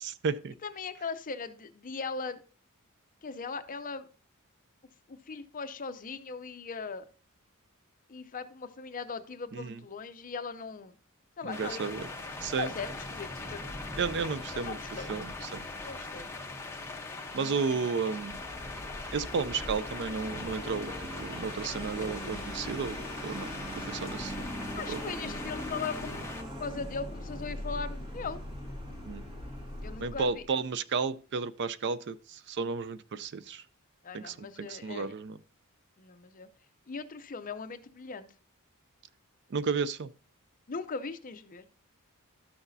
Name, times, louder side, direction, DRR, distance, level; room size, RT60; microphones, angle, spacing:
voice 1, 0.6-2.4 3.2-4.1 5.1-7.0 8.1-10.9 11.4-12.0 12.6-13.8 14.5-15.1 15.8-16.3 17.3-17.9 24.7-26.2 26.6-28.4 29.8-30.4 34.0-35.1 36.0-36.5 36.9-38.3 40.7-41.7, left 4 dB, 40° left, 0.6 m, -39 dB
voice 2, 11.4-12.1 12.4-12.7 14.0-14.8 15.1-15.7 17.3-18.4 19.1-20.9 21.2-24.4 24.9-25.0 25.2-25.4 29.1-29.2 30.0-33.6 34.1-35.4 39.5-40.1, right 5 dB, 50° right, 0.4 m, -33 dB
sound 1, 11.5-26.4, left 3 dB, 10° left, 0.9 m, -41 dB
Vehicle, 18.2-30.5, equal, 25° right, 1.9 m, -40 dB
12.5 x 6.0 x 2.7 m
head